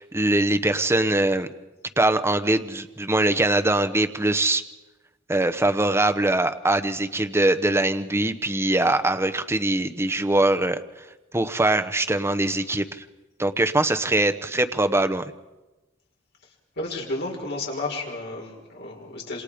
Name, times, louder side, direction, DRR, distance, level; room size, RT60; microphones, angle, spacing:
voice 1, 0.0-1.5 2.0-4.6 5.3-10.8 11.3-13.0 13.4-15.2, right 2 dB, 15° right, 8 dB, 0.9 m, -22 dB
voice 2, 16.8-19.4, left 2 dB, 60° left, -1 dB, 5.6 m, -32 dB
27.0 x 27.0 x 5.1 m, 1.1 s
head